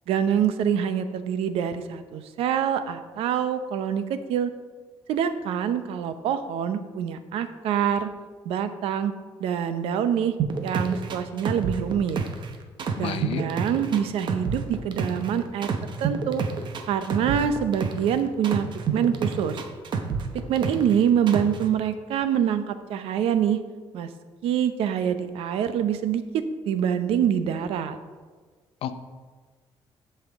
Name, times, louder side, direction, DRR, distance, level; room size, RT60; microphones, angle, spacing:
voice 1, 0.1-4.5 5.1-8.1 8.4-9.1 9.4-10.4 10.6-12.2 13.0-15.7 16.0-16.4 16.9-18.7 18.9-19.6 20.5-23.6 23.9-24.1 24.4-28.0, right 8 dB, 90° right, 11 dB, 0.7 m, -25 dB
sound 1, 10.4-12.5 12.8-15.3 15.6-18.1 18.4-20.9 21.3-21.6, right 6 dB, 55° right, 0.9 m, -28 dB
voice 2, 13.0-13.4 28.8-29.0, left 9 dB, 85° left, 11 dB, 0.6 m, -31 dB
14.5 x 5.7 x 3.6 m, 1.4 s
cardioid pair, 135°, 10 cm